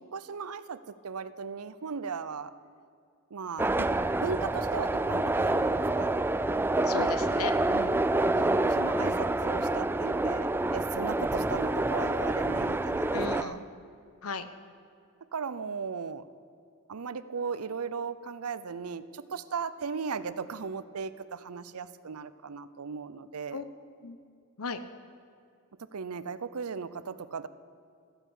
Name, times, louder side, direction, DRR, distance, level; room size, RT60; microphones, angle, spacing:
voice 1, 0.0-2.5 3.3-3.9 4.2-6.1 8.1-13.6 15.3-16.3 16.9-23.6 25.8-27.5, right 5 dB, 90° right, 15 dB, 0.6 m, -37 dB
sound 1, 3.6-13.4, right 2 dB, 10° right, 0.3 m, -27 dB
voice 2, 6.8-7.9 13.1-13.6 14.2-14.5 23.5-23.6 24.0-24.2 24.6-24.8, left 5 dB, 80° left, 11 dB, 0.9 m, -36 dB
14.0 x 10.0 x 8.1 m, 2.4 s
head